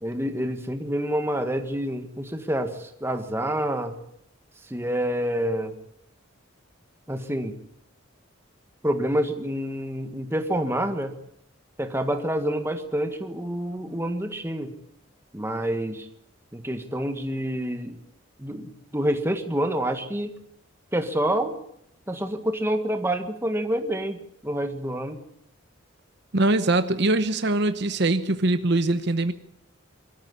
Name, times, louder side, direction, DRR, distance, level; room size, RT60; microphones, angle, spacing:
voice 1, 0.0-3.9 4.7-5.7 7.1-7.5 8.8-11.1 11.8-14.7 15.3-16.1 16.5-18.0 18.4-20.3 20.9-21.6 22.1-24.2 24.4-25.2, right 1 dB, 10° right, 6 dB, 1.7 m, -27 dB
voice 2, 26.3-29.3, right 2 dB, 55° right, 10 dB, 1.0 m, -22 dB
23.0 x 13.5 x 9.9 m, 0.76 s
head